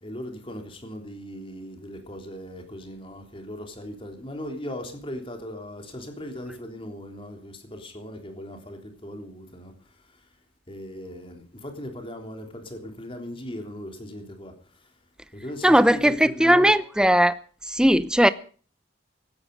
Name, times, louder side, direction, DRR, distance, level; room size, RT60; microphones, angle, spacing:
voice 1, 0.0-10.3 10.7-14.9 15.3-16.8, equal, 30° left, 3.4 m, -38 dB
voice 2, 15.6-17.4 17.7-18.3, equal, 5° right, 0.7 m, -18 dB
17.5 x 13.5 x 5.3 m
head